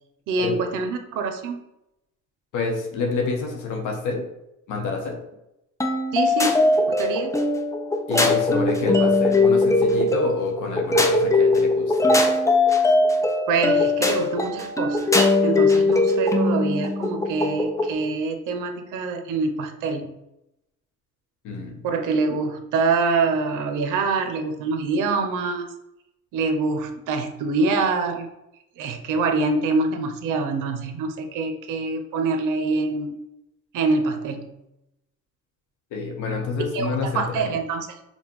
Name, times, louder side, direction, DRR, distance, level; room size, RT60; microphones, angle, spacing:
voice 1, 0.3-1.6 6.1-7.4 13.5-20.2 21.8-25.7 26.3-28.3 28.8-33.2 33.7-34.5 36.7-37.9, right 4 dB, 90° right, 6 dB, 0.6 m, -25 dB
voice 2, 2.5-4.2 4.7-5.2 8.1-12.2 21.4-21.8 35.9-37.5, left 4 dB, 80° left, 2 dB, 0.9 m, -28 dB
sound 1, 5.8-17.9, left 2 dB, 10° left, 0.4 m, -20 dB
5.2 x 2.2 x 3.0 m, 0.87 s
cardioid pair, 90°, 30 cm